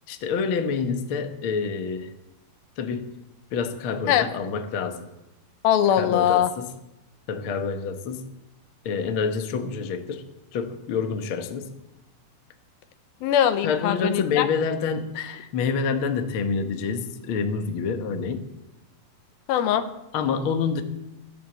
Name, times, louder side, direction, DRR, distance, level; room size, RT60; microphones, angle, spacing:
voice 1, 0.1-2.1 2.8-3.1 3.5-5.1 6.0-6.8 7.3-8.3 8.8-10.3 10.5-11.7 13.6-18.5 20.1-20.8, left 5 dB, 60° left, 6 dB, 1.3 m, -27 dB
voice 2, 5.6-6.5 13.2-14.5 19.5-19.8, left 10 dB, 80° left, 10 dB, 2.7 m, -21 dB
15.0 x 12.0 x 7.9 m, 0.92 s
omnidirectional pair, 4.3 m